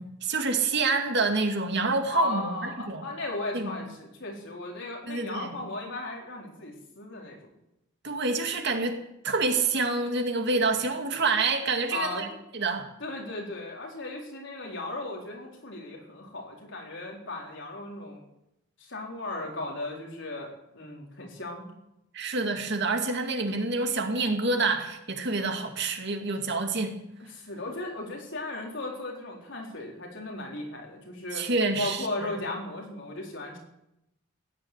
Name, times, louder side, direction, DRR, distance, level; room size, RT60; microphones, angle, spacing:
voice 1, 0.0-3.0 3.5-3.7 5.1-5.5 8.0-12.3 12.5-12.9 22.1-27.0 31.3-32.4, right 3 dB, 60° right, 5 dB, 2.2 m, -27 dB
voice 2, 2.1-7.4 11.9-12.3 13.0-18.2 18.8-21.7 27.3-31.5 31.8-33.6, left 2 dB, 65° left, 0 dB, 4.3 m, -36 dB
16.0 x 10.5 x 8.2 m, 0.86 s
head